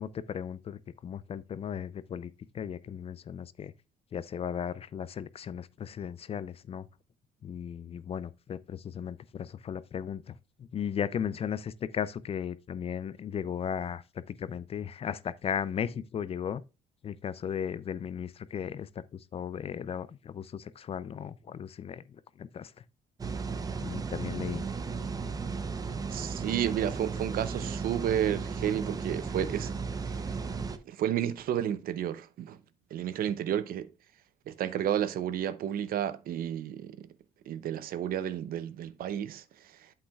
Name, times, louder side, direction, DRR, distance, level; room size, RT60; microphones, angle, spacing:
voice 1, 0.0-2.3 2.5-3.7 4.1-6.9 7.4-16.6 17.0-22.0 22.4-22.7 23.8-24.6, left 8 dB, 35° left, 0.4 m, -36 dB
sound 1, 23.2-30.8, right 5 dB, 20° right, 0.6 m, -35 dB
voice 2, 26.1-29.7 30.0-30.1 30.9-32.6 32.9-33.9 34.5-37.1 37.5-39.4, right 10 dB, 60° right, 0.7 m, -31 dB
8.6 x 7.8 x 2.3 m
cardioid pair, 110°, 17 cm